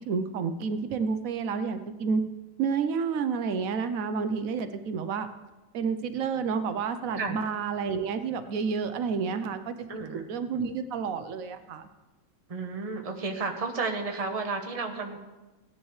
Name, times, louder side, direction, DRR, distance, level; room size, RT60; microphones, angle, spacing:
voice 1, 0.1-2.2 2.6-5.3 5.7-9.8 10.1-11.9, right 5 dB, 85° right, 9 dB, 1.1 m, -30 dB
voice 2, 9.9-10.3 12.5-15.2, right 4 dB, 30° right, 3 dB, 1.0 m, -32 dB
17.0 x 10.0 x 3.2 m, 1.1 s
omnidirectional pair, 1.4 m